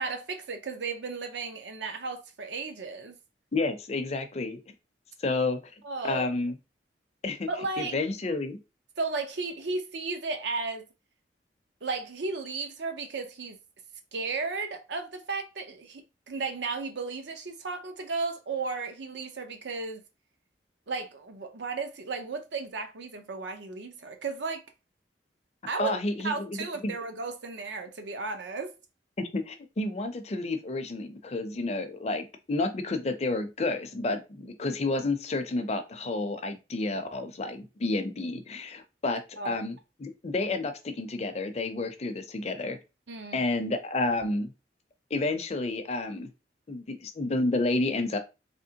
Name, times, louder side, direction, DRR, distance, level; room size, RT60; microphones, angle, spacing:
voice 1, 0.0-3.2 5.8-6.3 7.5-8.0 9.0-10.8 11.8-13.6 14.1-20.0 20.9-24.6 25.7-26.0 26.2-28.7 39.4-39.6 43.1-43.4, right 4 dB, 80° right, 0.7 m, -34 dB
voice 2, 3.5-4.6 5.2-6.6 7.2-7.5 7.8-8.6 25.8-26.9 29.3-42.8 43.3-44.5 45.1-46.3 46.7-48.2, left 2 dB, 35° left, 0.5 m, -30 dB
3.5 x 2.9 x 2.8 m
head